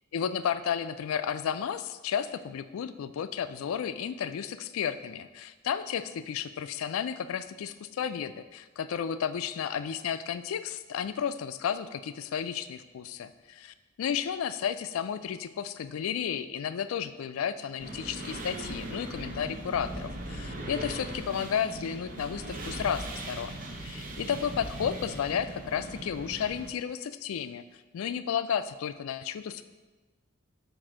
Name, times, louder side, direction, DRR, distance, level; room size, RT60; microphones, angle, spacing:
voice 1, 0.1-13.6 14.0-27.6 27.9-29.6, left 8 dB, 90° left, 13 dB, 0.3 m, -32 dB
sound 1, 17.8-26.7, right 1 dB, 40° right, 0.6 m, -39 dB
7.4 x 2.6 x 4.9 m, 1.2 s
head